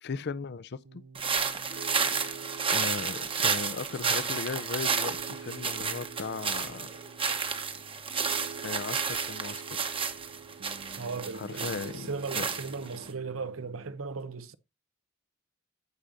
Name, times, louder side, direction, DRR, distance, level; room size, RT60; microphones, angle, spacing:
voice 1, 0.0-0.8 1.4-2.0 2.7-6.9 8.6-9.8 11.3-12.5, left 4 dB, 55° left, 0.5 m, -37 dB
Piano, 0.8-13.9, right 5 dB, 60° right, 0.6 m, -47 dB
sound 1, 1.1-13.1, right 5 dB, 25° right, 1.0 m, -31 dB
voice 2, 11.0-14.6, right 4 dB, 90° right, 0.8 m, -37 dB
14.5 x 5.0 x 2.6 m
head